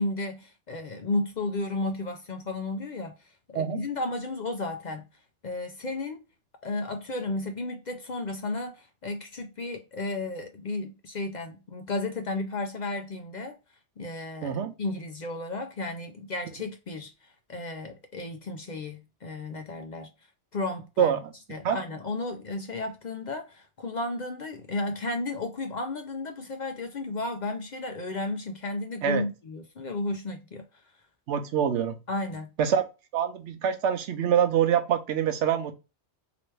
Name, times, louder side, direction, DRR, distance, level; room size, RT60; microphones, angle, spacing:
voice 1, 0.0-5.1 5.4-6.2 6.6-13.6 14.0-20.1 20.5-21.2 21.5-30.6 32.1-32.5, left 2 dB, 50° left, 0.6 m, -33 dB
voice 2, 14.4-14.7 21.0-21.2 21.6-21.8 29.0-29.2 31.3-32.0 32.6-32.9 33.1-35.7, right 8 dB, 80° right, 1.0 m, -25 dB
3.2 x 2.9 x 3.1 m
omnidirectional pair, 1.2 m